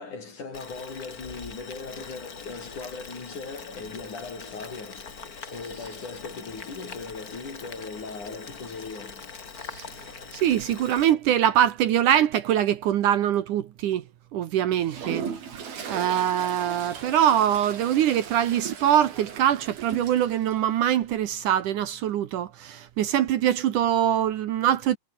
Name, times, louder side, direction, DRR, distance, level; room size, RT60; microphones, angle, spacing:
voice 1, 0.0-9.3, left 4 dB, 55° left, 7.2 m, -39 dB
Boiling, 0.5-11.1, left 5 dB, 30° left, 1.9 m, -42 dB
voice 2, 10.3-14.0 14.3-15.3 15.9-25.0, right 11 dB, 70° right, 2.5 m, -23 dB
Toilet flush, 14.8-20.6, right 6 dB, 85° right, 5.9 m, -38 dB
omnidirectional pair, 4.1 m